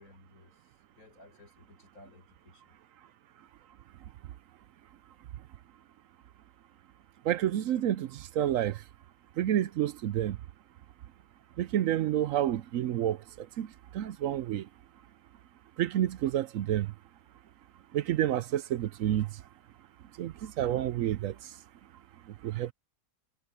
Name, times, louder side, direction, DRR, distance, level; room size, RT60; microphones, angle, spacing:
voice 1, 0.0-2.8, left 1 dB, 70° left, 7.7 m, -57 dB
voice 2, 7.2-8.8 9.4-10.4 11.6-13.7 13.9-14.7 15.8-16.9 17.9-19.3 20.2-21.3 22.4-22.7, right 11 dB, 70° right, 0.9 m, -29 dB
omnidirectional pair, 1.5 m